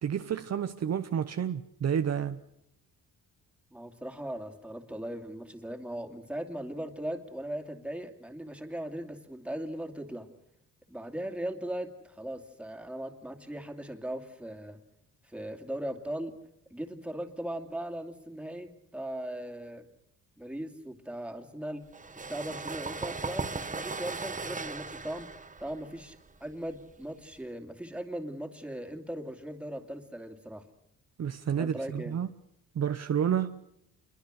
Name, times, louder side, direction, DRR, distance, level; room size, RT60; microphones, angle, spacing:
voice 1, 0.0-2.4 31.2-32.3 32.7-33.6, right 8 dB, 45° right, 0.9 m, -30 dB
voice 2, 3.7-10.3 10.9-14.8 15.2-16.4 16.7-19.9 20.4-21.9 22.3-25.3 25.6-30.7 31.6-32.2, right 1 dB, 5° right, 2.6 m, -38 dB
sound 1, 21.9-27.4, right 4 dB, 20° right, 1.4 m, -38 dB
27.0 x 22.5 x 6.5 m
cardioid pair, 100°, 35 cm